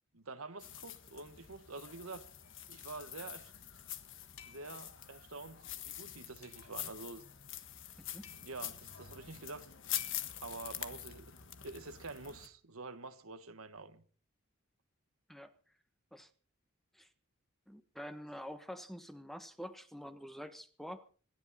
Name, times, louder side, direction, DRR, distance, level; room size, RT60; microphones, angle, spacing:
voice 1, 0.1-2.3 2.7-3.5 4.4-7.2 8.3-9.7 10.4-11.3 11.6-14.0, right 3 dB, 80° right, 1.5 m, -47 dB
sound 1, 0.6-12.5, left 11 dB, 60° left, 1.5 m, -45 dB
sound 2, 2.4-2.7 4.4-4.9 6.4-6.8 8.2-8.7 10.0-10.5, left 10 dB, 80° left, 2.8 m, -55 dB
voice 2, 8.0-8.3 15.3-15.5 16.1-16.3 16.9-17.1 17.7-21.0, equal, ahead, 1.3 m, -47 dB
26.5 x 11.0 x 4.3 m
head